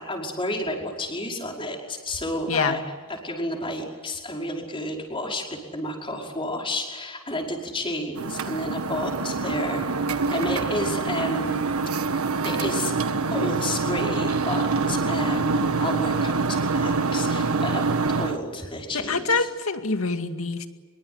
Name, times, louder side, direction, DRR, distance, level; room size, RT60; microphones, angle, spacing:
voice 1, 0.0-2.8 3.1-10.0 10.3-11.7 12.2-12.9 13.3-17.9 18.2-19.5, left 1 dB, 25° left, 0 dB, 5.3 m, -31 dB
sound 1, 8.2-18.4, right 4 dB, 85° right, 1.6 m, -25 dB
voice 2, 18.9-20.7, left 4 dB, 75° left, 7 dB, 2.2 m, -25 dB
25.5 x 23.0 x 9.7 m, 1.4 s
head